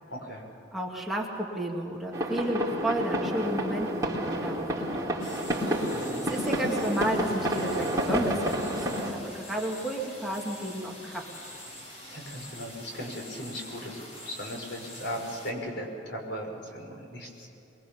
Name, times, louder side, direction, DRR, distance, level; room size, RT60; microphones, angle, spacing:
voice 1, 0.1-0.5 5.9-6.2 12.0-17.5, equal, 75° left, 1 dB, 5.8 m, -38 dB
voice 2, 0.7-5.3 6.2-11.3, right 1 dB, ahead, -2 dB, 2.4 m, -32 dB
sound 1, 2.1-9.1, equal, 20° right, 3.9 m, -29 dB
sound 2, 5.2-15.5, left 1 dB, 40° left, 4.7 m, -45 dB
23.5 x 23.0 x 7.1 m, 3.0 s
head